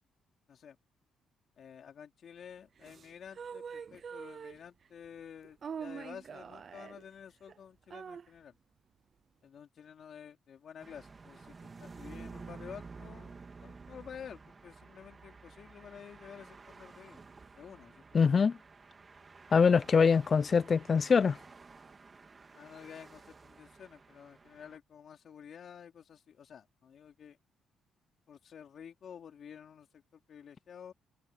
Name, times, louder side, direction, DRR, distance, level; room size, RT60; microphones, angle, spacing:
voice 1, 1.6-8.6 9.4-17.2 17.6-18.4 19.6-19.9 22.5-27.4 28.3-30.9, left 8 dB, 60° left, 4.0 m, -51 dB
sound 1, 2.8-4.9 5.4-7.1 7.5-7.6 7.9-8.3, right 6 dB, 50° right, 0.5 m, -44 dB
sound 2, 10.8-24.8, right 4 dB, 30° right, 2.7 m, -52 dB
voice 2, 18.1-18.6 19.5-21.4, left 5 dB, 40° left, 0.3 m, -24 dB
cardioid pair, 90°, 0 cm